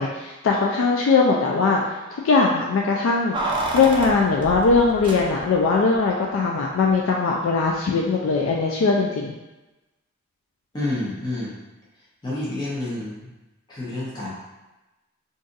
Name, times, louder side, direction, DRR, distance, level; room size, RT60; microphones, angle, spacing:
voice 1, 0.0-1.8 2.1-3.4 3.7-9.3, left 4 dB, 70° left, -1 dB, 0.3 m, -20 dB
Keys jangling, 3.3-5.7 5.9-6.0, right 2 dB, 25° right, 0.4 m, -29 dB
voice 2, 10.7-11.5 12.2-13.3 13.7-14.3, left 2 dB, 20° left, -8 dB, 0.7 m, -29 dB
2.6 x 2.4 x 3.8 m, 1.1 s
head